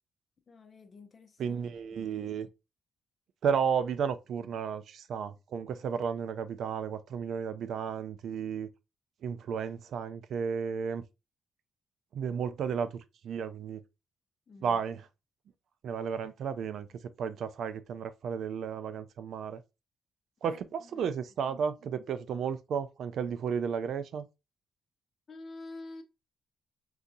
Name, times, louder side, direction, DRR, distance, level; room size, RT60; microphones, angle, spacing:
voice 1, 0.5-1.6 1.9-2.0 14.5-14.8 20.4-21.1 25.3-26.0, left 2 dB, 40° left, 0.6 m, -48 dB
voice 2, 1.4-2.5 3.4-8.7 9.2-11.0 12.1-13.8 14.6-15.1 15.8-16.9 17.2-19.6 20.4-24.3, right 7 dB, 70° right, 0.4 m, -33 dB
3.9 x 2.7 x 2.3 m
cardioid pair, 135°, 0 cm